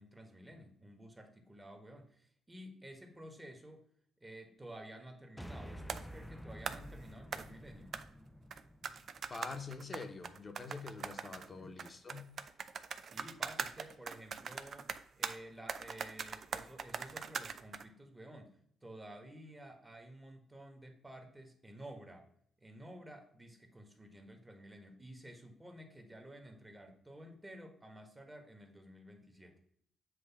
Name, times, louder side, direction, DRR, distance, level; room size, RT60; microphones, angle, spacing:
voice 1, 0.0-3.8 4.2-7.9 11.3-11.7 13.0-14.9 15.2-22.3 22.6-29.6, right 1 dB, 15° right, 5 dB, 1.5 m, -52 dB
sound 1, 5.4-9.8, equal, 5° left, 0.5 m, -50 dB
sound 2, 5.9-6.1 6.7-6.9 7.3-7.5 7.9-8.0 8.5-11.5 11.8-15.4 15.7-17.8, right 6 dB, 50° right, 0.5 m, -41 dB
voice 2, 9.3-12.3, left 4 dB, 30° left, 6 dB, 1.0 m, -45 dB
7.8 x 3.1 x 5.8 m, 0.66 s
cardioid pair, 90°, 0 cm